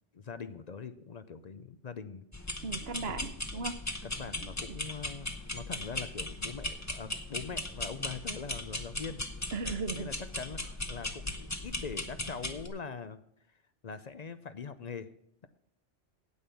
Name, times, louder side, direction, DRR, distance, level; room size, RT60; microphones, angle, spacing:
voice 1, 0.1-2.2 3.1-3.2 4.0-9.2 9.9-13.2 13.5-15.1, left 5 dB, 45° left, 11 dB, 0.6 m, -42 dB
sound 1, 2.3-12.7, left 2 dB, 15° left, 0.8 m, -38 dB
voice 2, 2.6-3.8 9.5-10.1, right 4 dB, 60° right, 11 dB, 1.1 m, -36 dB
9.4 x 8.5 x 7.0 m, 0.77 s
omnidirectional pair, 1.2 m